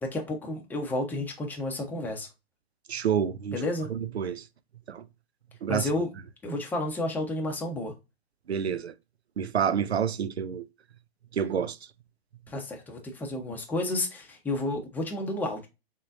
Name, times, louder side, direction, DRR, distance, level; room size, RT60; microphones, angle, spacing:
voice 1, 0.0-2.3 3.5-3.9 5.7-6.1 6.4-7.9 12.5-15.7, left 1 dB, 5° left, 0.7 m, -31 dB
voice 2, 2.9-3.6 3.9-4.4 4.9-5.0 5.6-5.9 8.5-8.9 9.4-10.6 11.3-11.8, right 8 dB, 90° right, 0.5 m, -28 dB
3.9 x 3.6 x 2.5 m
figure-of-eight pair, 115°, 31 cm